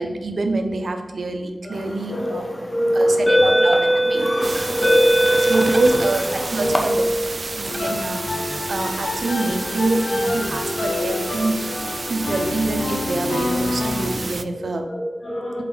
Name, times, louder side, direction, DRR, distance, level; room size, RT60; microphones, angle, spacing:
voice 1, 0.0-2.4 2.9-3.8 4.1-4.3 5.5-7.0 7.6-11.6 12.1-14.8, right 2 dB, 65° right, 5 dB, 0.7 m, -25 dB
voice 2, 1.6-3.6 3.9-6.1 6.5-7.3 7.7-7.9 9.8-10.3 10.8-12.3 14.4-15.6, equal, 55° left, -2 dB, 1.7 m, -25 dB
sound 1, 2.0-2.2 3.0-6.8, equal, 15° left, 0.9 m, -20 dB
sound 2, 4.4-14.4, right 3 dB, 50° right, 0.4 m, -31 dB
sound 3, 7.7-14.1, left 2 dB, 85° left, 0.9 m, -28 dB
7.6 x 3.8 x 3.9 m, 1.3 s
wide cardioid pair, 85°, 0 cm